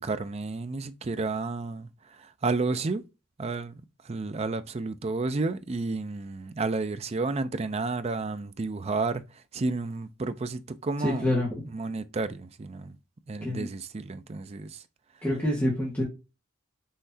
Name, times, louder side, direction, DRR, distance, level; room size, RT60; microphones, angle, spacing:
voice 1, 0.0-1.9 2.4-3.0 3.4-3.8 4.1-9.2 9.5-11.4 11.7-12.9 13.3-14.8, right 3 dB, 30° right, 0.4 m, -31 dB
voice 2, 11.0-11.6 13.4-13.7 15.2-16.0, left 1 dB, 10° left, 1.5 m, -26 dB
5.7 x 3.2 x 2.7 m
head